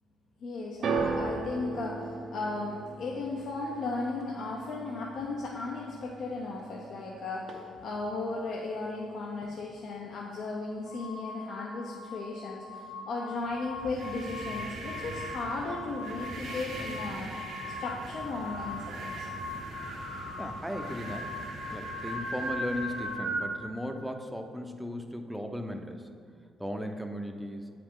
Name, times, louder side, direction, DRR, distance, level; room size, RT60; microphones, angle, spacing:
voice 1, 0.4-17.3 17.8-19.3, left 3 dB, 65° left, -2 dB, 0.7 m, -36 dB
sound 1, 0.8-7.1 7.4-8.0 8.8-8.9, right 4 dB, 65° right, 0.7 m, -37 dB
sound 2, 10.8-23.1, left 3 dB, 85° left, 1.2 m, -42 dB
sound 3, 13.7-23.5, right 2 dB, 85° right, 1.2 m, -39 dB
voice 2, 20.4-21.3 21.7-26.1 26.6-27.6, equal, 5° right, 5 dB, 0.6 m, -36 dB
8.1 x 5.0 x 3.7 m, 2.2 s
cardioid pair, 90°, 0 cm